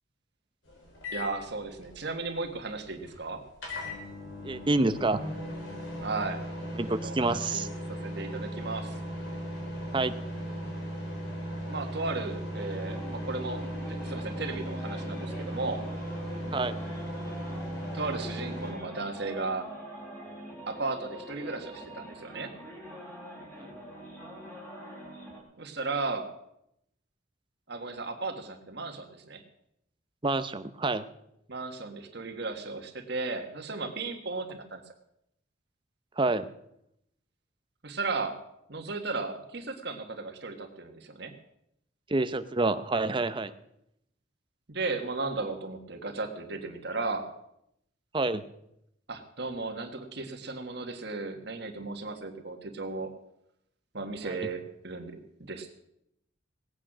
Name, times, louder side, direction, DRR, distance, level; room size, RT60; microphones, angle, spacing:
sound 1, 0.7-18.7, equal, 75° left, 4.0 m, -37 dB
voice 1, 1.1-3.4 6.0-6.4 7.0-9.0 11.7-13.6 13.9-15.9 17.9-19.7 20.7-22.5 25.6-26.3 27.7-29.4 31.5-34.8 37.8-38.4 38.7-41.3 44.7-47.3 49.1-53.1 53.9-55.7, right 3 dB, 60° right, 5 dB, 1.6 m, -35 dB
voice 2, 4.4-5.2 6.8-7.7 9.9-10.1 16.5-16.8 30.2-31.1 36.2-36.5 42.1-43.5 48.1-48.4 54.2-54.4, right 2 dB, 25° right, 11 dB, 0.7 m, -27 dB
sound 2, 12.5-25.4, equal, 10° left, 3.4 m, -44 dB
18.5 x 8.9 x 6.2 m, 0.79 s
head